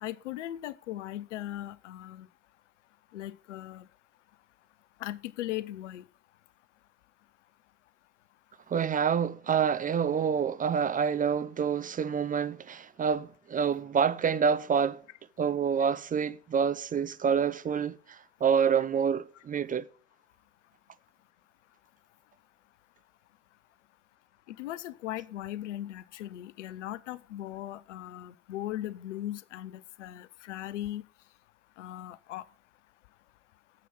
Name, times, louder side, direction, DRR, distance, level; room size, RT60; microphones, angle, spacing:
voice 1, 0.0-2.3 3.1-3.9 5.0-6.1 24.5-31.0 31.8-32.5, left 13 dB, 75° left, 0.7 m, -38 dB
voice 2, 8.7-15.0 15.4-19.9, right 7 dB, 20° right, 0.6 m, -27 dB
9.1 x 7.8 x 7.4 m
hypercardioid pair, 70°, 36 cm